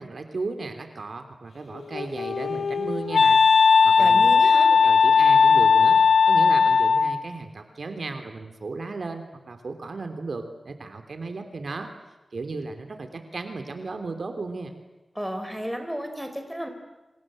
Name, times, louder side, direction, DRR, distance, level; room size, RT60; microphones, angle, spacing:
voice 1, 0.0-3.4 3.8-4.3 4.7-6.0 6.3-11.9 12.3-14.7, right 3 dB, 65° right, 7 dB, 3.2 m, -35 dB
Wind instrument woodwind instrument, 1.7-7.2, left 5 dB, 85° left, 1.0 m, -18 dB
voice 2, 4.0-4.7 15.1-16.7, equal, 5° right, 5 dB, 4.8 m, -33 dB
29.0 x 26.5 x 7.7 m, 1.1 s
wide cardioid pair, 100°, 0 cm